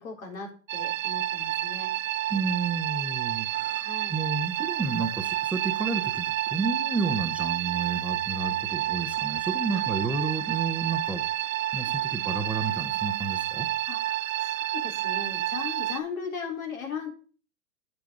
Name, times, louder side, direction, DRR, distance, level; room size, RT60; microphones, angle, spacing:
voice 1, 0.0-1.9 3.8-4.1 9.7-9.8 13.9-17.1, left 5 dB, 80° left, 2 dB, 3.9 m, -38 dB
sound 1, 0.7-16.0, right 14 dB, 70° right, 0.8 m, -29 dB
voice 2, 2.3-11.2 11.7-13.7, right 4 dB, 5° right, 4 dB, 0.5 m, -31 dB
8.0 x 6.7 x 4.8 m, 0.38 s
hypercardioid pair, 140°, 41 cm